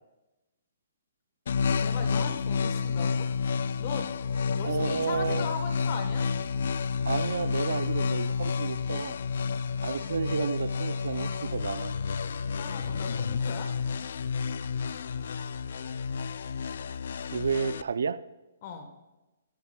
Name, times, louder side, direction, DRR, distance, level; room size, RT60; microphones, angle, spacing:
sound 1, 1.5-17.8, left 5 dB, 50° left, 0.3 m, -30 dB
voice 1, 1.7-3.2 3.8-4.1 4.5-6.3 12.6-13.7 18.6-18.9, left 5 dB, 30° left, 6 dB, 1.2 m, -38 dB
voice 2, 4.6-5.5 7.1-9.2 9.8-11.9 17.3-18.2, right 5 dB, 75° right, 14 dB, 0.5 m, -31 dB
15.0 x 14.0 x 2.3 m, 1.0 s
hypercardioid pair, 180°, 0 cm